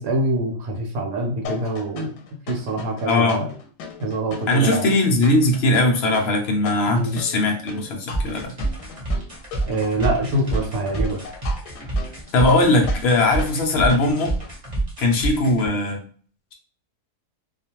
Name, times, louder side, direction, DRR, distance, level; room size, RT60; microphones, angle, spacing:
voice 1, 0.0-2.1 2.5-3.5 4.0-4.9 6.9-7.1 9.7-11.2, right 1 dB, 70° right, 2 dB, 1.1 m, -25 dB
sound 1, 1.4-14.5, left 5 dB, 90° left, 1.1 m, -38 dB
voice 2, 3.0-3.4 4.5-8.5 12.3-14.3 15.0-16.0, left 2 dB, 70° left, 2 dB, 0.6 m, -19 dB
sound 2, 8.1-15.7, right 2 dB, 30° right, 0.7 m, -27 dB
2.4 x 2.3 x 2.8 m, 0.43 s
omnidirectional pair, 1.7 m